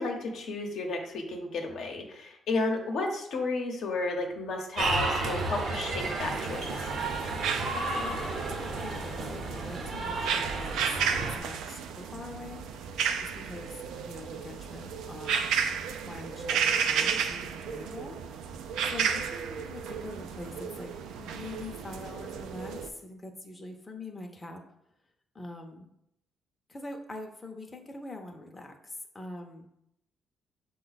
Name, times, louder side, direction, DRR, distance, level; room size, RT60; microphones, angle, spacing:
voice 1, 0.0-6.9, left 3 dB, 70° left, 2 dB, 0.8 m, -32 dB
sound 1, 4.8-11.4, right 3 dB, 65° right, 0.8 m, -32 dB
sound 2, 6.2-22.9, right 7 dB, 90° right, 0.3 m, -33 dB
voice 2, 7.7-12.7 13.1-15.5 16.0-18.2 18.8-20.9 21.2-24.6 25.3-25.9 26.7-29.7, left 2 dB, 20° left, 2 dB, 0.6 m, -43 dB
5.9 x 2.2 x 4.0 m, 0.79 s
cardioid pair, 90°, 0 cm